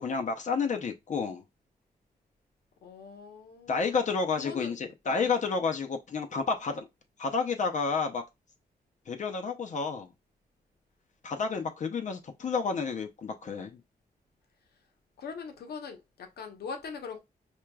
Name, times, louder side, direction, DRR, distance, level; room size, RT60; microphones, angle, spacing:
voice 1, 0.0-1.4 3.7-6.9 7.2-8.2 9.1-10.1 11.2-13.8, left 5 dB, 50° left, 0.6 m, -30 dB
voice 2, 2.8-3.9 4.4-4.7 5.1-5.3 11.5-11.7 15.2-17.2, left 5 dB, 80° left, 1.0 m, -42 dB
4.6 x 2.9 x 2.2 m
wide cardioid pair, 120°, 16 cm